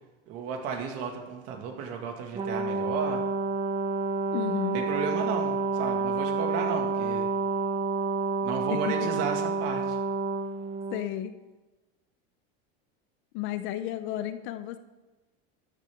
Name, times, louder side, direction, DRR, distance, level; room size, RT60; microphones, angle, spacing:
voice 1, 0.3-3.2 4.7-7.3 8.4-10.0, right 5 dB, 50° right, 3 dB, 2.0 m, -34 dB
Brass instrument, 2.3-11.1, right 4 dB, 20° right, 0.9 m, -29 dB
voice 2, 4.3-4.8 8.7-9.1 10.9-11.3 13.3-14.8, left 12 dB, 40° left, 11 dB, 0.5 m, -33 dB
13.0 x 10.5 x 3.6 m, 1.2 s
supercardioid pair, 165°, 30 cm